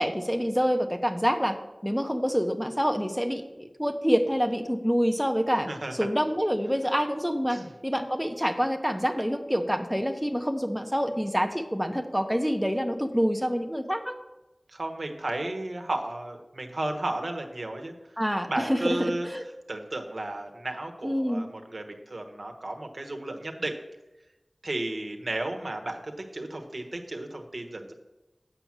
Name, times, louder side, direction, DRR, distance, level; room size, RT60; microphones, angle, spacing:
voice 1, 0.0-1.6 1.8-14.2 18.2-19.4 21.0-21.5, equal, ahead, 5 dB, 0.8 m, -27 dB
voice 2, 14.7-17.9 18.5-19.3 19.7-23.7 24.6-27.9, right 2 dB, 70° right, 4 dB, 1.2 m, -33 dB
8.2 x 6.0 x 7.3 m, 1.0 s
wide cardioid pair, 55°, 0 cm